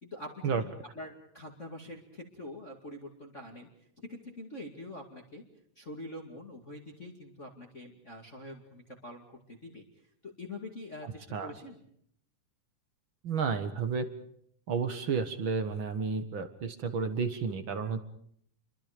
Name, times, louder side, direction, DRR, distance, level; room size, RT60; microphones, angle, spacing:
voice 1, 0.0-3.7 4.0-5.4 5.8-9.8 10.2-11.8, left 1 dB, 25° left, 1 dB, 2.3 m, -45 dB
voice 2, 11.0-11.5 13.2-14.1 14.7-18.0, right 5 dB, 50° right, 9 dB, 1.7 m, -31 dB
29.5 x 23.5 x 5.1 m, 0.67 s
omnidirectional pair, 3.8 m